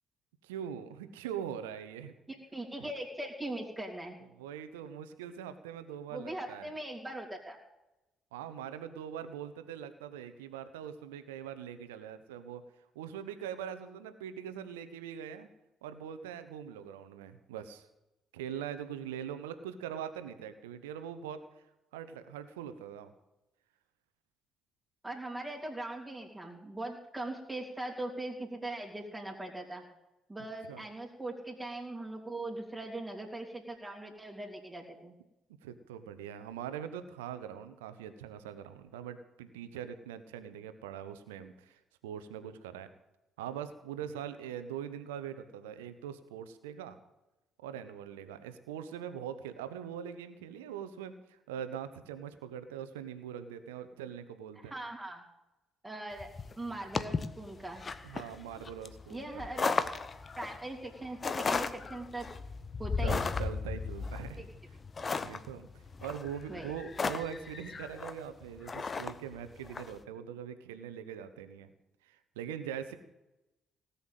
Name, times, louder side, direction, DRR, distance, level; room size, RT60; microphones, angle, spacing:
voice 1, 0.4-2.1 2.8-2.9 4.3-6.7 8.3-12.6 12.9-15.5 15.8-17.9 18.3-21.4 21.9-23.1 30.7-30.8 35.6-42.9 43.4-47.0 47.6-54.7 58.0-59.5 63.0-64.4 65.2-65.7 66.0-71.7 72.0-72.9, right 9 dB, 75° right, 11 dB, 1.0 m, -42 dB
voice 2, 2.3-4.2 6.1-7.6 25.0-29.8 30.3-35.1 54.6-55.2 55.8-56.3 56.6-57.8 59.1-60.0 60.4-62.3 62.8-63.2 64.4-64.5 66.5-66.7, right 2 dB, 15° right, -2 dB, 3.3 m, -40 dB
sound 1, 56.2-69.9, left 4 dB, 35° left, 0.9 m, -36 dB
17.5 x 7.1 x 9.2 m, 0.94 s
figure-of-eight pair, 45°, 0 cm